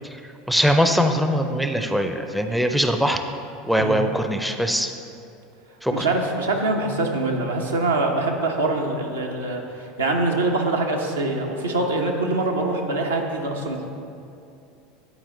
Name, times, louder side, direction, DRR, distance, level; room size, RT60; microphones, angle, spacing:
voice 1, 0.5-3.2 3.6-4.9 5.8-6.1, equal, ahead, 6 dB, 0.4 m, -21 dB
voice 2, 5.9-13.9, right 2 dB, 80° right, 1 dB, 0.7 m, -24 dB
10.0 x 4.3 x 3.8 m, 2.6 s
figure-of-eight pair, 75°, 0 cm